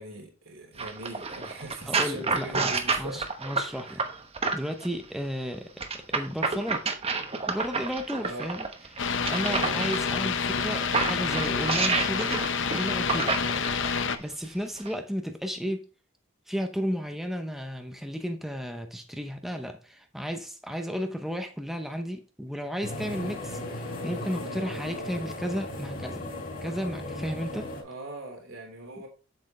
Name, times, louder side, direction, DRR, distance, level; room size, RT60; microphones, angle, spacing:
voice 1, 0.0-3.3 3.9-4.0 8.2-8.5 9.5-10.0 27.8-29.1, right 2 dB, 75° right, 3.2 m, -40 dB
sound 1, 0.8-4.9 5.8-10.0 10.6-14.0 14.8-14.9, right 4 dB, 30° right, 1.0 m, -29 dB
voice 2, 1.9-2.7 3.0-4.0 4.5-6.9 7.5-8.6 8.9-13.5 14.2-15.9 16.5-26.3 26.6-27.7, equal, ahead, 0.7 m, -33 dB
sound 2, 9.0-14.2, left 5 dB, 65° left, 0.8 m, -28 dB
sound 3, 22.8-27.8, left 1 dB, 45° left, 3.4 m, -36 dB
7.8 x 7.5 x 3.1 m
head